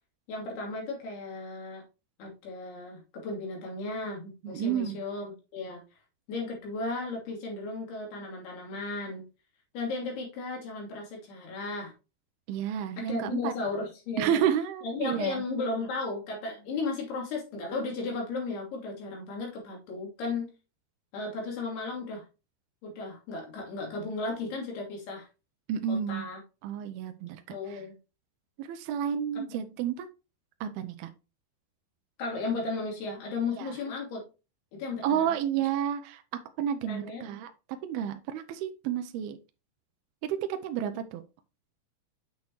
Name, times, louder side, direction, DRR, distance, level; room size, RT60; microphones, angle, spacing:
voice 1, 0.3-1.8 2.2-5.8 6.3-9.2 9.7-11.9 13.0-14.4 14.8-20.5 21.1-22.2 22.8-25.3 25.9-26.4 27.5-27.9 29.3-29.4 32.2-34.2 34.7-35.3 36.8-37.2, left 3 dB, 70° left, -1 dB, 4.7 m, -35 dB
voice 2, 4.4-5.0 12.5-13.5 14.2-15.4 25.7-26.3 26.6-27.4 27.7-27.8 28.6-30.1 30.6-31.1 33.6-33.7 35.0-39.4 40.2-41.2, right 9 dB, 80° right, 8 dB, 2.5 m, -31 dB
8.4 x 6.2 x 3.1 m, 0.30 s
omnidirectional pair, 4.7 m